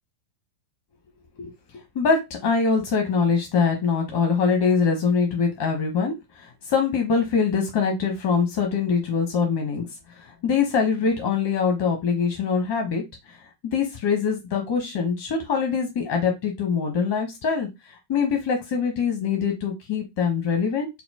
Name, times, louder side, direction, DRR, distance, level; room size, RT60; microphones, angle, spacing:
voice 1, 1.9-13.0 13.7-17.7 18.1-20.9, left 5 dB, 50° left, 3 dB, 0.9 m, -23 dB
4.1 x 2.0 x 2.8 m, 0.21 s
figure-of-eight pair, 90°, 0 cm